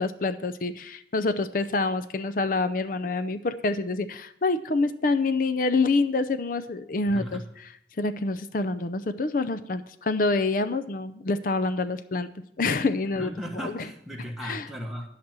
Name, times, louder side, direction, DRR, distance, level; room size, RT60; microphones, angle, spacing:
voice 1, 0.0-7.4 8.0-12.3 12.6-13.3 13.6-13.8 14.4-14.7, left 3 dB, 50° left, 12 dB, 0.6 m, -26 dB
voice 2, 7.1-7.4 13.1-15.1, equal, ahead, -1 dB, 1.3 m, -36 dB
11.5 x 5.9 x 6.1 m, 0.72 s
head